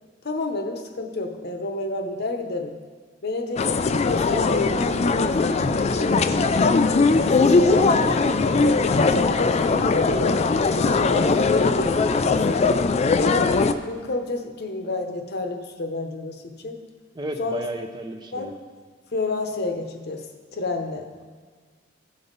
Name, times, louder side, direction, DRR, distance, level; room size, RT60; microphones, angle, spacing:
voice 1, 0.2-2.8 3.2-6.5 7.1-8.0 8.6-10.5 10.9-12.5 13.1-16.8 17.4-17.6 18.3-18.6 19.1-20.3 20.5-21.1, left 3 dB, 55° left, 5 dB, 0.9 m, -29 dB
sound 1, 3.6-13.7, left 4 dB, 35° left, 0.3 m, -20 dB
voice 2, 7.6-8.2 17.1-18.5, right 1 dB, 20° right, 5 dB, 0.6 m, -33 dB
16.0 x 5.4 x 3.9 m, 1.5 s
head